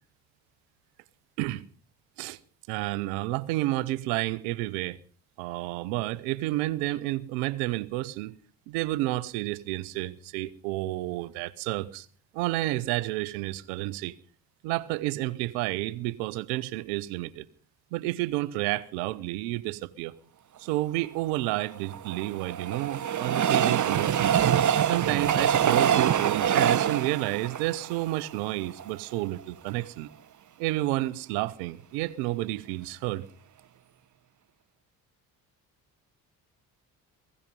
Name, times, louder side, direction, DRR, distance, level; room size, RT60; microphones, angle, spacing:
voice 1, 2.7-5.0 5.4-8.4 8.7-12.1 12.3-14.1 14.6-17.5 17.9-20.1 20.6-24.4 24.9-30.1 30.6-33.3, right 17 dB, 80° right, 0.9 m, -30 dB
Train, 21.6-28.9 29.4-29.5 29.7-29.8, right 9 dB, 40° right, 0.9 m, -25 dB
16.5 x 16.0 x 5.3 m
hypercardioid pair, 50°, 48 cm